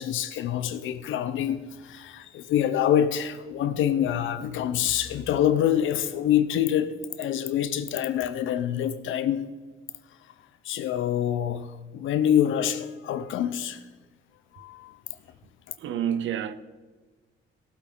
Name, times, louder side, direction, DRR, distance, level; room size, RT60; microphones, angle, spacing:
voice 1, 0.0-9.5 10.6-13.8 14.5-14.9 15.7-15.8, left 10 dB, 80° left, 0.8 m, -26 dB
voice 2, 15.8-16.5, right 9 dB, 75° right, 0.8 m, -28 dB
18.0 x 8.1 x 3.9 m
cardioid pair, 90°, 20 cm